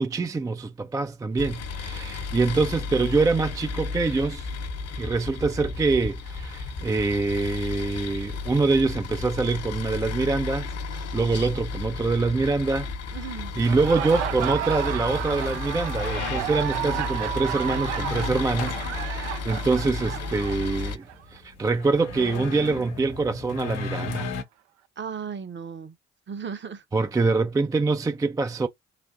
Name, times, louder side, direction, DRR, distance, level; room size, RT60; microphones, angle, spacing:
voice 1, 0.0-4.5 5.0-12.9 13.6-21.1 21.3-24.3 26.9-28.7, right 3 dB, 10° right, 0.3 m, -25 dB
sound 1, 1.4-21.0, left 4 dB, 45° left, 0.9 m, -33 dB
voice 2, 13.1-13.5 25.0-26.0 26.3-26.8, right 6 dB, 35° right, 0.8 m, -35 dB
sound 2, 13.6-24.4, left 4 dB, 80° left, 0.8 m, -37 dB
Laughter, 13.6-21.2, right 13 dB, 80° right, 0.5 m, -32 dB
3.4 x 2.5 x 2.4 m
figure-of-eight pair, 40°, 34 cm